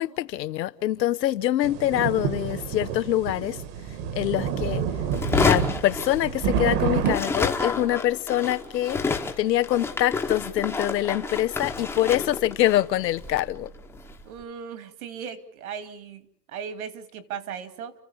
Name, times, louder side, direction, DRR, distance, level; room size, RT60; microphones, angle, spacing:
voice 1, 0.0-3.6 4.1-4.8 5.3-9.0 9.4-13.7, left 13 dB, 80° left, 1.1 m, -25 dB
sound 1, 1.6-7.2, right 7 dB, 30° right, 1.6 m, -28 dB
sound 2, 5.1-6.7 7.0-14.2, left 4 dB, 5° left, 1.1 m, -29 dB
voice 2, 14.2-17.9, right 7 dB, 60° right, 2.7 m, -37 dB
30.0 x 15.5 x 7.0 m
supercardioid pair, 165°, 49 cm